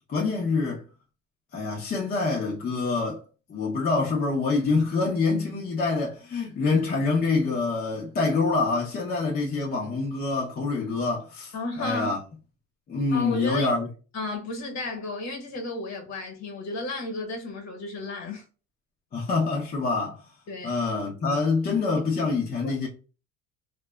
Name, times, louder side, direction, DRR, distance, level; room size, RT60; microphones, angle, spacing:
voice 1, 0.1-0.8 1.5-3.2 3.5-12.2 12.9-13.9 19.1-20.2 20.6-22.9, left 4 dB, 30° left, 0.6 m, -26 dB
voice 2, 11.5-12.1 13.1-13.7 14.1-18.4 20.5-20.8 22.1-22.4 22.6-22.7, left 2 dB, 60° left, 1.1 m, -33 dB
2.6 x 2.2 x 2.2 m
cardioid pair, 130°, 32 cm